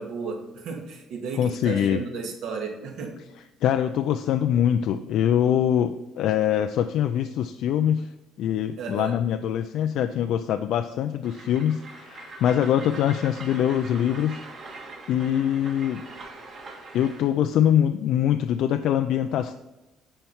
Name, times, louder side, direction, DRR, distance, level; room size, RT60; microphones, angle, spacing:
voice 1, 0.0-3.2 8.8-9.2, right 5 dB, 60° right, 2 dB, 1.9 m, -34 dB
voice 2, 1.4-2.0 3.6-8.1 8.4-14.4 15.1-16.0 16.9-19.5, left 10 dB, 60° left, 7 dB, 0.4 m, -23 dB
Train, 11.2-17.3, right 3 dB, 35° right, 1.8 m, -42 dB
10.0 x 4.5 x 5.5 m, 0.99 s
cardioid pair, 160°, 0 cm